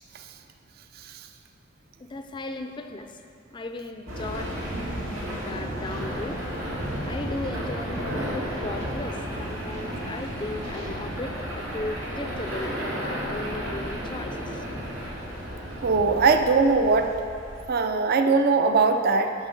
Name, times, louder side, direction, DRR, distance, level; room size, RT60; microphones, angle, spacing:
voice 1, 2.0-3.2 3.5-4.6 5.3-6.4 7.1-14.7, left 2 dB, 25° left, 6 dB, 0.4 m, -36 dB
sound 1, 4.1-17.7, equal, 85° right, 2.1 m, -33 dB
voice 2, 15.8-17.1 17.7-19.3, right 4 dB, 50° right, 6 dB, 0.4 m, -21 dB
7.3 x 6.1 x 5.1 m, 2.5 s
head